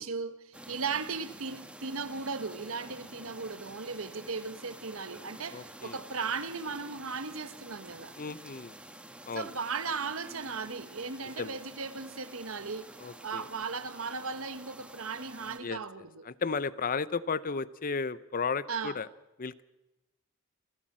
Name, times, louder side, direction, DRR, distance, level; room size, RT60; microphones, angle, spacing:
voice 1, 0.0-8.1 9.3-12.9 13.2-16.3 18.7-19.0, right 5 dB, 85° right, 1.4 m, -37 dB
sound 1, 0.5-15.6, right 1 dB, 5° right, 1.4 m, -49 dB
voice 2, 5.5-6.0 8.2-8.7 9.3-9.5 11.4-11.6 13.0-13.4 15.6-15.8 16.2-19.1 19.4-19.6, left 5 dB, 45° left, 0.7 m, -34 dB
28.0 x 14.5 x 7.5 m
head